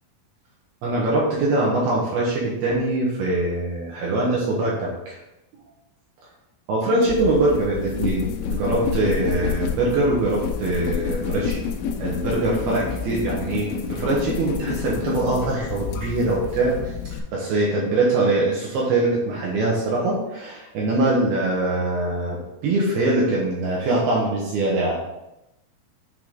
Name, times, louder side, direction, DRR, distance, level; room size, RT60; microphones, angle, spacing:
voice 1, 0.8-5.2 6.7-11.6 12.0-16.9 17.3-25.0, right 2 dB, 75° right, -4 dB, 2.4 m, -23 dB
sound 1, 7.0-17.2, left 6 dB, 85° left, 2.6 m, -29 dB
9.3 x 3.7 x 3.8 m, 0.92 s
omnidirectional pair, 5.9 m